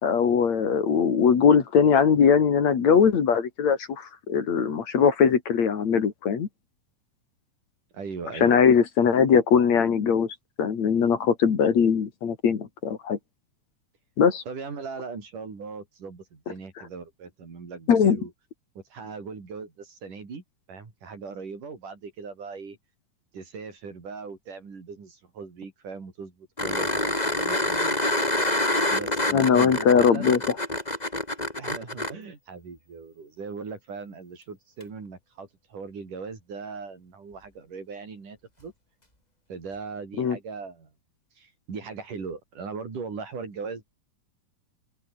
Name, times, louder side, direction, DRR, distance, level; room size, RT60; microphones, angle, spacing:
voice 1, 0.0-6.5 8.4-10.3 10.6-13.2 14.2-14.4 17.9-18.2 29.3-30.4 40.2-40.4, left 6 dB, 60° left, 3.7 m, -20 dB
voice 2, 7.9-8.7 14.5-18.3 18.8-22.8 23.3-28.1 28.9-30.4 31.6-38.7 39.5-40.9 41.4-43.8, right 5 dB, 75° right, 6.6 m, -39 dB
sound 1, 26.6-32.1 34.8-34.9, left 1 dB, 10° left, 4.0 m, -26 dB
open air
omnidirectional pair, 3.7 m